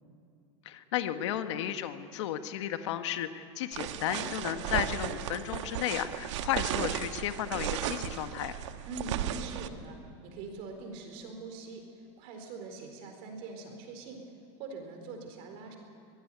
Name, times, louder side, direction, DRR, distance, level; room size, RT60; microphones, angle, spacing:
voice 1, 0.6-8.6, left 11 dB, 65° left, 9 dB, 1.4 m, -33 dB
sound 1, 3.7-9.7, right 11 dB, 70° right, 1.3 m, -35 dB
voice 2, 8.8-14.2 14.6-15.8, right 3 dB, 40° right, 4 dB, 4.4 m, -43 dB
24.0 x 18.5 x 9.5 m, 2.5 s
supercardioid pair, 175°, 16 cm